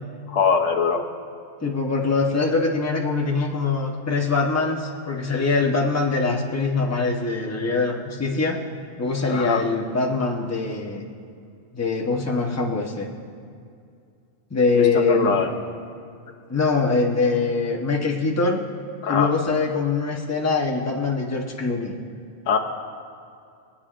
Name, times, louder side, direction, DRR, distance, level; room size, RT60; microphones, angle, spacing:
voice 1, 0.3-1.0 9.3-9.6 14.7-15.5 19.0-19.3 22.5-22.6, left 5 dB, 80° left, 2 dB, 1.1 m, -22 dB
voice 2, 1.6-8.6 9.0-11.0 11.7-13.1 14.5-15.4 16.5-18.6 19.1-21.9, left 4 dB, 15° left, -1 dB, 0.8 m, -23 dB
23.5 x 8.5 x 2.5 m, 2.4 s
omnidirectional pair, 1.3 m